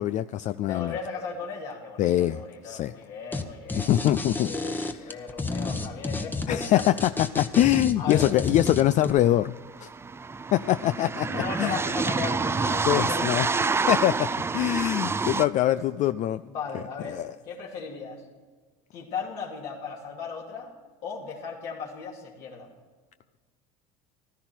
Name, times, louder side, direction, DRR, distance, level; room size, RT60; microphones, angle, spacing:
voice 1, 0.0-0.9 2.0-2.9 3.9-5.0 6.5-9.9 10.5-11.8 12.9-13.5 13.9-16.4 16.7-17.3, left 13 dB, 45° left, 12 dB, 0.4 m, -24 dB
voice 2, 0.7-3.9 4.4-6.9 8.0-8.3 11.0-13.5 15.6-15.8 16.4-18.3 18.9-20.7 21.0-22.7, left 5 dB, 70° left, -3 dB, 2.5 m, -36 dB
sound 1, 3.3-3.4 3.7-9.1, left 3 dB, 10° left, 1.0 m, -31 dB
sound 2, 8.9-9.0 9.2-15.4, right 4 dB, 15° right, 0.4 m, -27 dB
15.0 x 12.5 x 4.5 m, 1.5 s
supercardioid pair, 105°, 17 cm